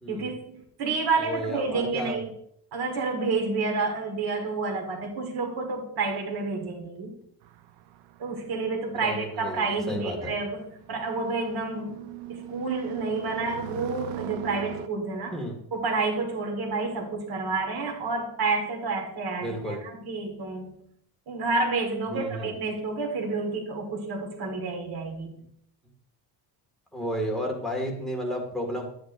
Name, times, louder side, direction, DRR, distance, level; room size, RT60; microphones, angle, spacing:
voice 1, 0.1-2.3 2.7-7.2 8.2-15.4 15.7-20.8 21.3-25.4, right 3 dB, 55° right, 2 dB, 1.7 m, -29 dB
voice 2, 1.2-2.2 9.0-10.3 15.3-15.5 19.4-19.8 22.1-22.5 26.9-28.8, equal, ahead, -1 dB, 1.9 m, -32 dB
sound 1, 7.4-14.9, right 11 dB, 80° right, 0.7 m, -41 dB
10.5 x 8.2 x 2.6 m, 0.71 s
cardioid pair, 135°, 43 cm